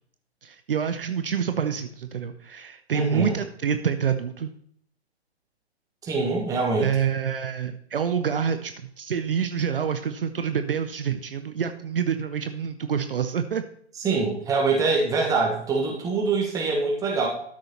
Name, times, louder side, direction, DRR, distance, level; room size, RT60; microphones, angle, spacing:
voice 1, 0.4-4.5 6.8-13.6, right 7 dB, 55° right, 9 dB, 0.7 m, -27 dB
voice 2, 2.9-3.4 6.0-6.9 14.0-17.3, right 4 dB, 10° right, -1 dB, 1.4 m, -24 dB
12.5 x 6.3 x 2.9 m, 0.64 s
figure-of-eight pair, 125°, 33 cm